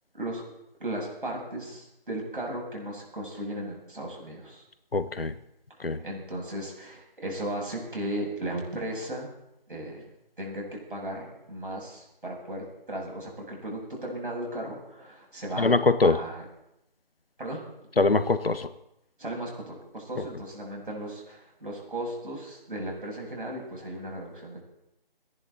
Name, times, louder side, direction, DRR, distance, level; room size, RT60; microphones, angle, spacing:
voice 1, 0.8-4.6 6.0-9.3 9.7-10.1 10.4-15.7 16.0-16.5 17.4-17.6 19.2-24.6, right 1 dB, 60° right, -1 dB, 7.2 m, -36 dB
voice 2, 4.9-5.3 5.8-6.0 15.6-16.2 18.0-18.7 20.2-20.3, left 3 dB, 75° left, 12 dB, 1.3 m, -23 dB
30.0 x 11.0 x 4.2 m, 0.84 s
figure-of-eight pair, 170°, 29 cm